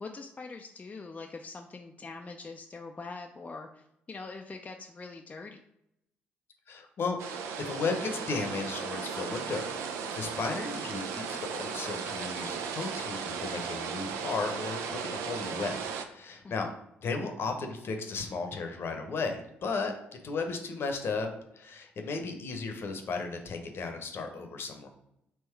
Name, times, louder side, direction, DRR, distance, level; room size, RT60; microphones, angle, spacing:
voice 1, 0.0-5.6 16.4-16.7, left 3 dB, 25° left, 3 dB, 0.4 m, -43 dB
voice 2, 6.7-7.2 7.6-9.7 10.1-15.8 16.1-16.7 17.0-19.9 20.2-21.3 21.6-24.9, left 4 dB, 50° left, 5 dB, 0.8 m, -34 dB
sound 1, 7.2-16.1, right 6 dB, 65° right, 0.4 m, -36 dB
3.6 x 2.9 x 4.5 m, 0.81 s
figure-of-eight pair, 45°, 5 cm